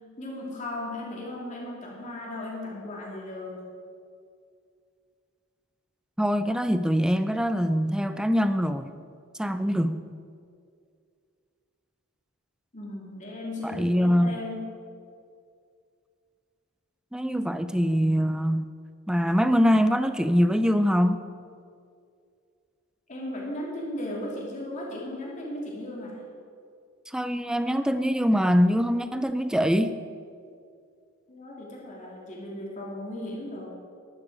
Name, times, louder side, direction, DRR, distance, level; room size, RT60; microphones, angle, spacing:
voice 1, 0.2-3.6 12.7-14.7 23.1-26.2 31.3-33.7, left 1 dB, 35° left, -3 dB, 2.9 m, -36 dB
voice 2, 6.2-8.9 9.4-10.0 13.6-14.3 17.1-18.6 19.1-21.2 27.1-30.0, equal, 5° right, 10 dB, 0.4 m, -23 dB
12.0 x 11.0 x 4.9 m, 2.3 s
head